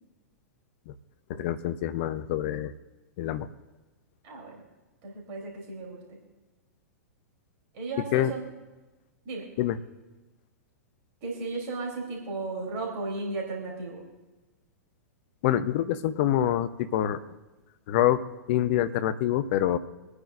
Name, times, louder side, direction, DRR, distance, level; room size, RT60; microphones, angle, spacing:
voice 1, 1.3-2.7 3.2-3.5 8.1-8.3 9.6-9.8 15.4-17.2 17.9-19.8, left 11 dB, 45° left, 12 dB, 0.8 m, -26 dB
voice 2, 4.2-4.6 5.0-6.2 7.7-8.5 9.3-9.4 11.2-14.0, right 3 dB, 40° right, -1 dB, 3.4 m, -35 dB
25.5 x 9.7 x 2.6 m, 1.2 s
figure-of-eight pair, 100°, 9 cm